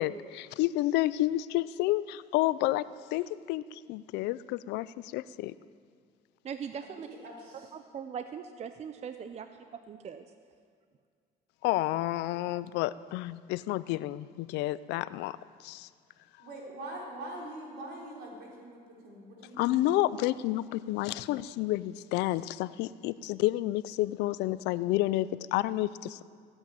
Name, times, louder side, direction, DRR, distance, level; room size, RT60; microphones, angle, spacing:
voice 1, 0.0-2.8 3.1-5.5 11.6-15.9 19.6-26.2, left 16 dB, 90° left, 17 dB, 0.4 m, -30 dB
voice 2, 6.4-7.1 7.5-9.5 9.7-10.3, right 7 dB, 40° right, 9 dB, 0.6 m, -40 dB
voice 3, 7.1-7.7 16.4-19.9, right 1 dB, 80° right, -3 dB, 4.4 m, -43 dB
15.0 x 8.8 x 9.1 m, 2.1 s
cardioid pair, 110°, 17 cm